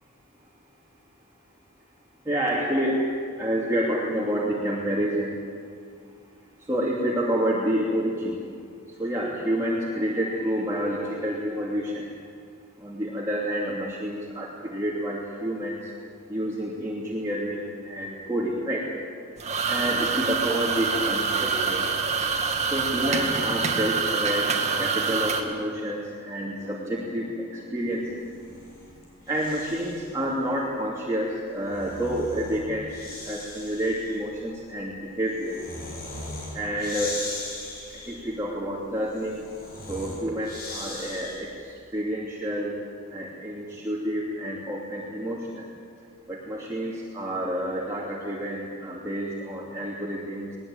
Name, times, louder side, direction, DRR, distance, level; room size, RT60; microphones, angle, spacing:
voice 1, 2.2-3.1 3.4-5.4 6.7-8.4 9.0-12.1 12.8-15.8 16.3-18.9 19.7-21.8 22.7-28.0 29.3-35.6 36.5-37.1 38.0-39.4 39.9-42.7 43.1-45.7 46.3-50.6, equal, 15° right, -6 dB, 2.8 m, -29 dB
sound 1, 19.4-25.4, right 5 dB, 30° right, 2.1 m, -26 dB
Bass guitar, 26.4-30.5, left 1 dB, 70° left, 4.5 m, -49 dB
Breathing, 28.2-30.1 31.4-41.6, left 2 dB, 45° left, 6.9 m, -39 dB
21.0 x 20.5 x 8.9 m, 2.3 s
head